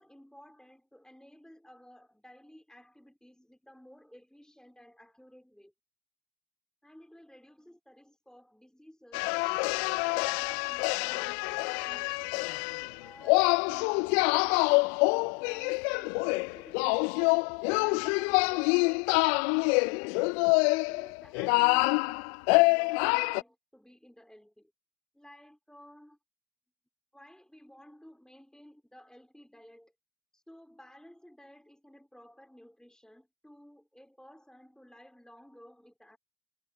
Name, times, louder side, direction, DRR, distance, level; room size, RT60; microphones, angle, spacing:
voice 1, 0.0-5.7 6.8-9.3 9.9-12.5 13.0-15.0 15.3-20.1 20.7-24.7 25.1-26.2 27.1-29.9 30.3-36.2, equal, ahead, 3.4 m, -55 dB
sound 1, 9.1-13.0 13.2-23.4, left 34 dB, 55° left, 0.5 m, -26 dB
hypercardioid pair, 70°, 39 cm